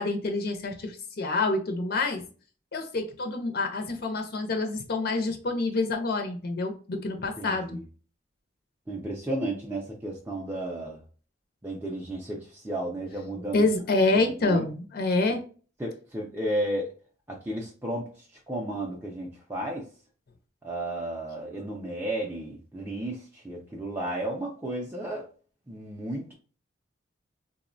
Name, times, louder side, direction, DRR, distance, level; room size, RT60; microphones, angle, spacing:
voice 1, 0.0-2.2 2.7-7.8 13.5-15.4, left 3 dB, 50° left, 4 dB, 0.4 m, -27 dB
voice 2, 7.4-7.8 8.9-11.0 11.6-13.7 14.2-14.7 15.8-16.9 17.3-18.1 18.5-19.8 20.6-25.2 25.7-26.3, right 1 dB, 10° right, -3 dB, 0.4 m, -33 dB
3.6 x 2.0 x 2.5 m, 0.39 s
head